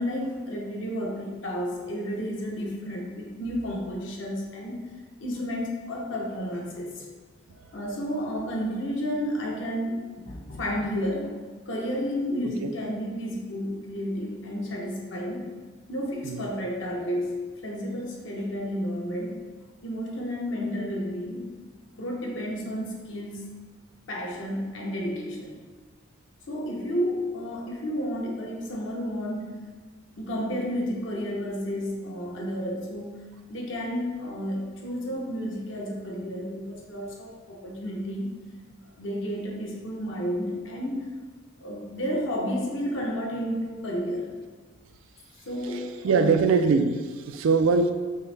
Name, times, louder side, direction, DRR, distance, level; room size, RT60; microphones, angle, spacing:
voice 1, 0.0-4.8 5.2-7.0 7.7-11.3 11.7-15.5 15.9-19.4 19.8-21.5 21.9-23.5 24.1-25.6 26.5-29.6 30.2-38.3 39.0-41.1 41.6-44.3 45.5-46.4, equal, 70° left, -1 dB, 0.8 m, -31 dB
voice 2, 46.0-47.9, right 4 dB, 85° right, 8 dB, 0.3 m, -22 dB
5.4 x 2.1 x 3.2 m, 1.4 s
head